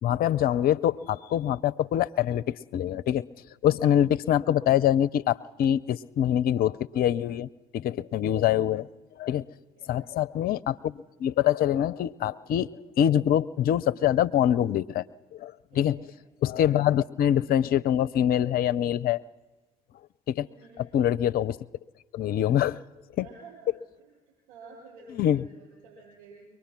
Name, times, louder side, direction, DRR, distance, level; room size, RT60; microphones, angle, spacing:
voice 1, 0.0-3.2 3.6-8.9 9.2-9.4 9.9-12.7 13.0-15.0 15.3-16.0 16.4-19.2 20.3-20.5 20.9-21.6 22.1-22.8 23.2-23.3 25.2-25.4, left 11 dB, 60° left, 15 dB, 0.6 m, -24 dB
voice 2, 15.7-16.1 20.4-20.8 23.2-26.5, right 3 dB, 80° right, -2 dB, 5.8 m, -51 dB
23.5 x 19.5 x 6.0 m, 1.2 s
hypercardioid pair, 50°, 18 cm